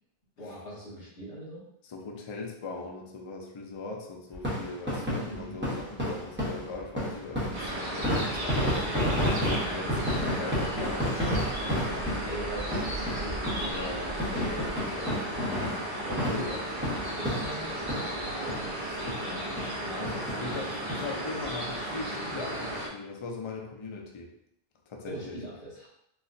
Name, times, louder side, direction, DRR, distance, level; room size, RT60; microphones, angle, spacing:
voice 1, 0.4-1.6 5.1-5.6 9.6-10.5 11.6-13.7 16.0-18.7 20.2-20.4 25.0-25.9, right 1 dB, 65° left, -7 dB, 1.4 m, -41 dB
voice 2, 1.9-11.3 11.8-12.1 13.6-15.3 16.3-16.5 19.0-24.3 24.9-25.4, left 3 dB, 50° left, 0 dB, 0.3 m, -40 dB
sound 1, 4.3-18.2 18.5-18.6 19.1-19.2 19.6-19.7 20.0-21.0 21.4-21.5 21.7-21.8, equal, 10° right, 0.9 m, -31 dB
sound 2, 7.5-22.9, right 1 dB, 55° right, 0.9 m, -34 dB
4.2 x 2.1 x 2.5 m, 0.78 s
omnidirectional pair, 1.0 m